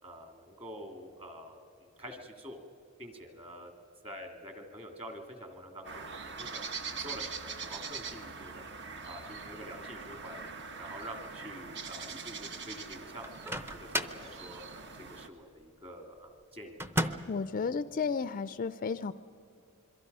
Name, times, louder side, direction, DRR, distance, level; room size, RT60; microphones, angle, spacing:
voice 1, 0.0-2.6 3.0-3.7 4.0-6.6 7.0-8.6 9.0-10.4 10.8-13.3 13.7-16.8, equal, 25° right, 4 dB, 2.5 m, -47 dB
sound 1, 5.8-15.3, right 5 dB, 55° right, 1.2 m, -42 dB
Microwave oven, 13.2-14.3 16.8-17.4, equal, 10° right, 0.7 m, -33 dB
voice 2, 17.3-19.1, left 5 dB, 40° left, 14 dB, 0.4 m, -33 dB
26.5 x 23.0 x 5.5 m, 2.6 s
head